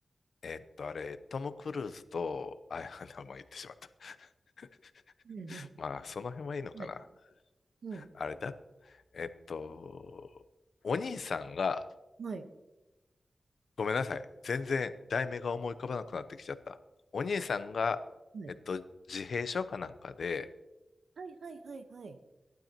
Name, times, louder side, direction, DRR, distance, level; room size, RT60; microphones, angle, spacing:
voice 1, 0.4-3.7 4.0-4.2 4.6-4.7 5.5-7.0 8.2-8.5 9.1-10.2 10.8-11.8 13.8-16.8 17.1-18.0 18.7-18.8 19.1-20.5, left 5 dB, 80° left, 12 dB, 0.7 m, -36 dB
voice 2, 5.2-5.7 6.7-7.1 7.8-8.1 12.2-12.5 18.3-18.5 21.2-22.2, right 4 dB, 85° right, 7 dB, 1.1 m, -43 dB
18.0 x 12.0 x 2.9 m, 1.0 s
wide cardioid pair, 75°, 0 cm